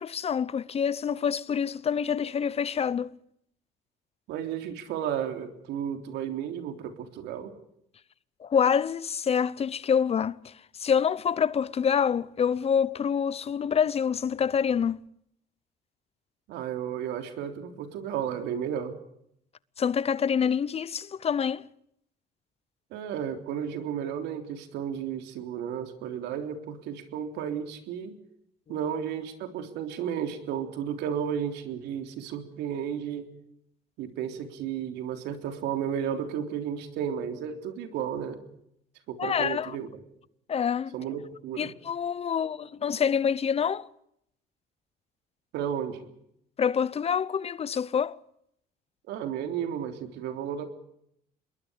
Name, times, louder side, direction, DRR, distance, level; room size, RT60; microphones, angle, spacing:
voice 1, 0.0-3.1 8.4-10.5 10.8-15.0 19.8-21.7 39.2-39.8 40.5-40.9 41.6-43.9 46.6-48.2, left 7 dB, 35° left, 0.8 m, -26 dB
voice 2, 4.3-7.5 16.5-19.0 22.9-28.2 28.7-33.3 34.0-38.4 39.1-40.0 40.9-41.7 45.5-46.1 49.1-50.7, right 8 dB, 85° right, 3.6 m, -33 dB
26.5 x 21.5 x 5.1 m
cardioid pair, 110°, 17 cm